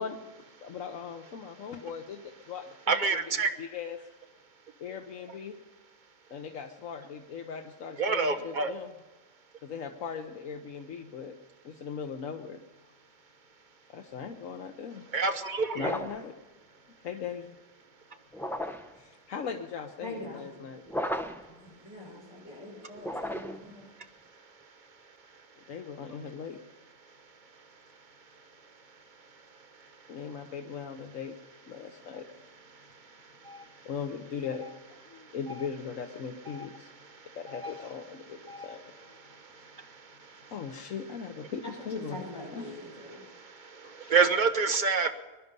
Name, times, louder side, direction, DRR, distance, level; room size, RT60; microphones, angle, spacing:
voice 1, 0.0-3.2 3.6-4.2 4.8-5.6 6.3-8.9 9.6-11.4 11.6-12.6 13.9-15.1 15.7-16.4 17.0-17.5 19.0-20.8 25.6-26.6 30.1-31.3 31.7-32.3 33.8-36.9 37.3-38.8 40.5-42.3 42.5-42.7 43.8-44.1, left 6 dB, 90° left, 4 dB, 1.3 m, -39 dB
voice 2, 2.9-3.5 8.0-8.7 15.1-15.9 33.5-33.6 36.5-36.7 37.5-37.9 38.5-38.7 44.0-45.1, right 4 dB, 40° right, 7 dB, 1.2 m, -27 dB
sound 1, 15.8-16.3 18.3-19.0 20.9-21.5 23.0-23.7, equal, ahead, 0.5 m, -34 dB
voice 3, 20.0-20.5 21.5-23.9 26.1-26.2 41.6-43.2, left 1 dB, 25° left, -4 dB, 6.7 m, -43 dB
22.0 x 11.0 x 5.4 m, 1.2 s
omnidirectional pair, 1.3 m